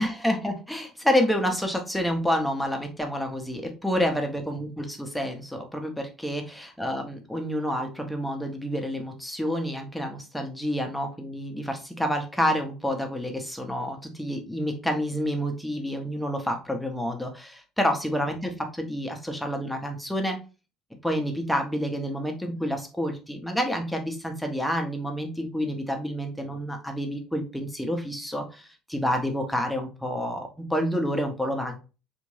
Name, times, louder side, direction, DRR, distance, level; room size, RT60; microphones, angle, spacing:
voice 1, 0.0-20.4 21.0-31.8, equal, 5° left, 3 dB, 0.9 m, -28 dB
3.5 x 2.6 x 3.2 m, 0.32 s
figure-of-eight pair, 60°, 0 cm